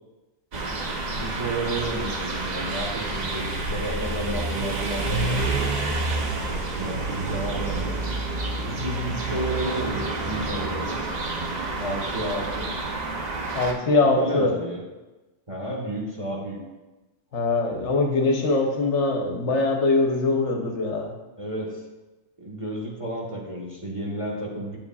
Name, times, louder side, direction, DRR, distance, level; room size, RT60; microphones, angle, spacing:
sound 1, 0.5-13.7, right 3 dB, 45° right, 0.6 m, -28 dB
voice 1, 1.1-5.4 6.5-8.0 8.6-11.0 11.8-12.7 14.0-14.8 15.5-16.6 21.4-21.8 22.4-24.8, right 1 dB, 25° right, -3 dB, 1.1 m, -32 dB
voice 2, 13.5-14.5 17.3-21.1, left 3 dB, 65° left, 2 dB, 1.1 m, -22 dB
9.6 x 7.4 x 2.3 m, 1.1 s
omnidirectional pair, 1.3 m